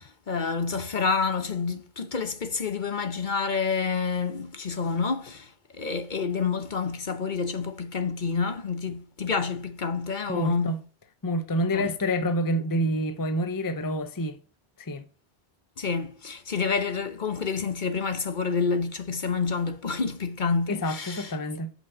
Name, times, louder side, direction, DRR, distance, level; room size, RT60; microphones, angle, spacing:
voice 1, 0.0-10.7 11.7-11.9 15.8-21.3, left 5 dB, 50° left, 1.0 m, -28 dB
voice 2, 10.3-10.8 11.2-14.4 14.8-15.1 20.7-21.7, equal, 20° left, 0.7 m, -27 dB
8.0 x 5.9 x 5.1 m
omnidirectional pair, 1.1 m